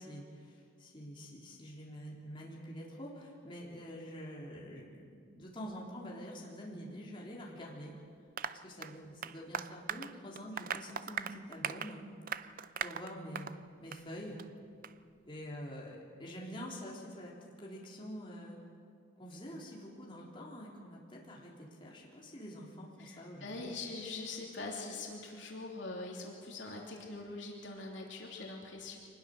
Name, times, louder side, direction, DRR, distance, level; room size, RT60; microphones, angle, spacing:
voice 1, 0.0-7.9 8.6-12.0 12.4-12.5 12.8-13.5 13.8-14.4 15.2-18.6 19.2-23.7, equal, 25° left, -4 dB, 3.6 m, -46 dB
Applause, 8.4-13.6 13.9-14.0 14.4-14.5 14.8-14.9, right 7 dB, 45° right, 0.5 m, -40 dB
voice 2, 23.0-29.0, left 3 dB, 70° left, -1 dB, 3.1 m, -43 dB
24.5 x 20.0 x 6.7 m, 2.3 s
head